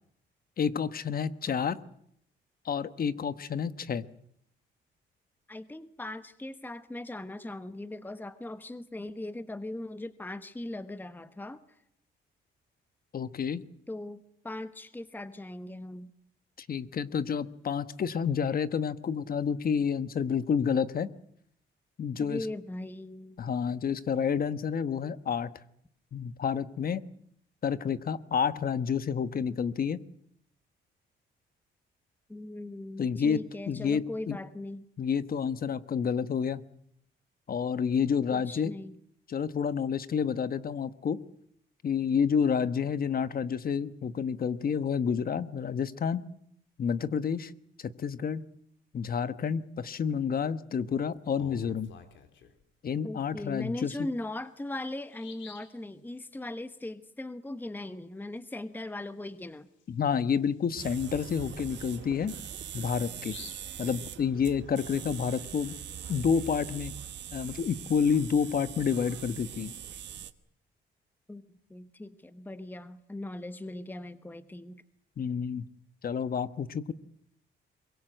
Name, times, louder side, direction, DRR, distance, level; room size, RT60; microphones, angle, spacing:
voice 1, 0.6-1.8 2.6-4.1 13.1-13.6 16.6-21.1 22.0-22.5 23.4-25.5 26.1-27.0 27.6-30.0 33.0-34.4 35.0-36.6 37.5-38.7 39.3-41.2 41.8-46.2 46.8-47.5 47.8-48.4 48.9-51.9 52.8-53.9 59.9-62.3 62.7-63.3 63.8-65.7 66.1-66.9 67.3-69.7 75.2-75.7 76.0-76.9, left 7 dB, 50° left, 13 dB, 1.2 m, -29 dB
voice 2, 5.5-11.8 13.9-16.1 22.2-23.4 32.3-34.9 38.3-39.0 53.0-59.7 71.3-71.4 71.7-74.8, left 1 dB, 10° left, 11 dB, 1.2 m, -39 dB
Bird vocalization bird call bird song, 51.1-52.6 54.1-54.2 54.6-54.7 55.1-55.8 59.3-59.4 59.8-59.9 60.4-64.7, left 6 dB, 70° left, 3.6 m, -52 dB
sound 1, 60.8-70.3, right 9 dB, 65° right, 1.5 m, -42 dB
23.5 x 22.5 x 8.0 m, 0.71 s
cardioid pair, 90°, 20 cm